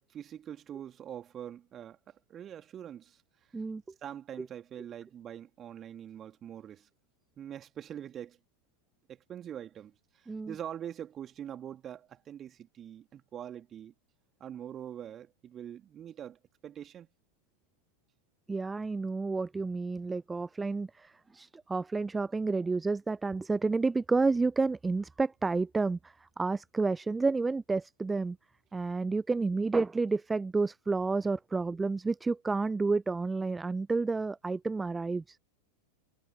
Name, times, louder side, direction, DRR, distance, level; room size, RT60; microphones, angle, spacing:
voice 1, 0.0-3.2 4.0-6.9 7.4-8.4 9.1-13.9 14.4-17.1, right 10 dB, 25° right, 2.7 m, -44 dB
voice 2, 18.5-28.4 28.7-35.4, right 3 dB, 10° right, 0.6 m, -30 dB
figure-of-eight pair, 90°, 0 cm